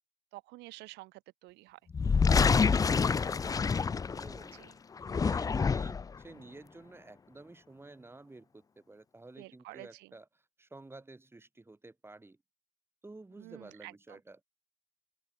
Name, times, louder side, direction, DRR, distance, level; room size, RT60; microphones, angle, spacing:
voice 1, 0.3-1.8 4.6-4.7 9.4-10.1 13.4-13.9, right 21 dB, 90° right, 1.5 m, -49 dB
sound 1, 1.9-4.5 5.0-6.1, left 5 dB, 20° left, 0.5 m, -27 dB
voice 2, 2.2-4.7 5.1-12.4 13.0-14.4, right 2 dB, 15° right, 4.1 m, -52 dB
cardioid pair, 110°, 17 cm